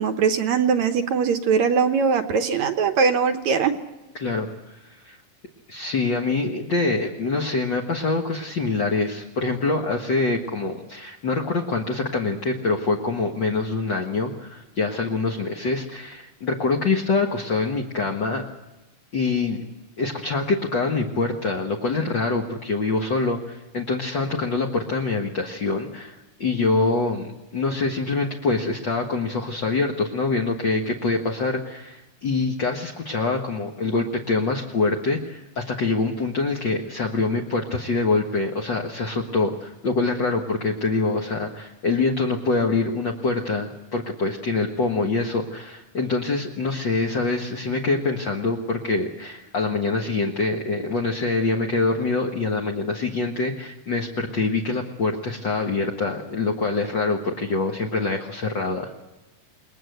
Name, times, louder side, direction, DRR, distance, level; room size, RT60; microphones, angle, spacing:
voice 1, 0.0-3.8, right 6 dB, 65° right, 8 dB, 1.9 m, -21 dB
voice 2, 4.1-5.2 5.7-18.5 19.1-19.6 20.0-58.9, left 3 dB, 50° left, 2 dB, 1.4 m, -25 dB
29.0 x 20.5 x 8.0 m, 1.1 s
omnidirectional pair, 4.1 m